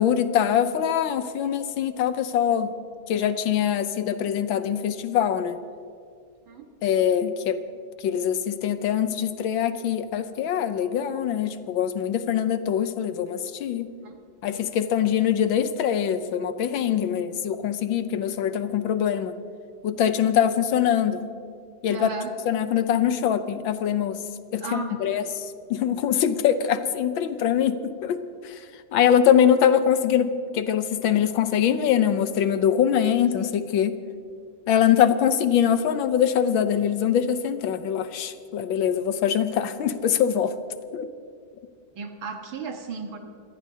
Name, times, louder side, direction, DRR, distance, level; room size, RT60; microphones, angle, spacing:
voice 1, 0.0-2.7 3.1-5.6 6.8-7.6 8.0-13.9 14.4-19.4 19.8-21.2 21.8-22.1 22.5-24.2 24.5-25.2 25.7-28.6 28.9-34.0 34.7-40.6 40.9-41.1, left 9 dB, 75° left, 10 dB, 1.5 m, -23 dB
voice 2, 1.4-1.9 6.5-6.7 14.0-14.2 21.9-22.3 24.6-25.3 33.0-33.5 42.0-43.2, right 4 dB, 80° right, 4 dB, 2.2 m, -36 dB
25.5 x 18.5 x 2.8 m, 2.3 s
omnidirectional pair, 2.2 m